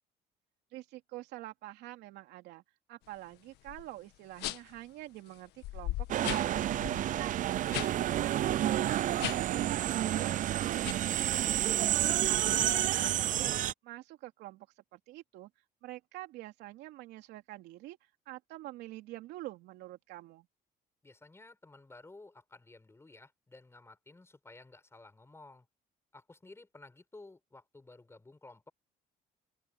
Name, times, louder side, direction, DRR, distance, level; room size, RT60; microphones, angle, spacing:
voice 1, 0.7-2.6 2.9-11.6 12.2-13.6 13.8-14.7 14.9-15.5 15.8-18.0 18.3-20.5, right 17 dB, 90° right, 3.0 m, -46 dB
sound 1, 3.7-3.9 4.4-4.8 5.3-5.4 5.6-7.9 8.2-8.4 9.1-9.6 10.0-10.3 10.8-10.9, left 16 dB, 85° left, 1.5 m, -38 dB
sound 2, 6.1-13.7, right 12 dB, 50° right, 0.5 m, -30 dB
voice 2, 11.8-12.3 21.0-25.7 26.1-28.7, left 2 dB, 15° left, 7.4 m, -54 dB
open air
cardioid pair, 110°, 17 cm